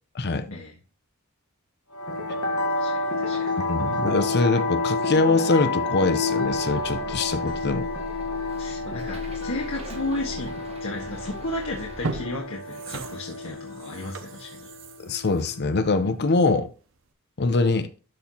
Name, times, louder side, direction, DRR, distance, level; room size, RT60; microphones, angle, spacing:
voice 1, 0.1-0.5 3.7-7.9 15.0-16.7 17.4-17.9, left 3 dB, 50° left, 0.7 m, -23 dB
sound 1, 1.9-16.0, left 3 dB, 90° left, 1.5 m, -30 dB
voice 2, 2.7-3.5 8.6-10.5 10.8-14.6, left 2 dB, 70° left, 1.5 m, -33 dB
Bus, 6.4-12.2, right 1 dB, 30° right, 1.3 m, -41 dB
sound 2, 11.2-11.4 11.8-16.6 17.0-17.1, right 3 dB, 65° right, 0.9 m, -38 dB
12.5 x 4.4 x 2.9 m
head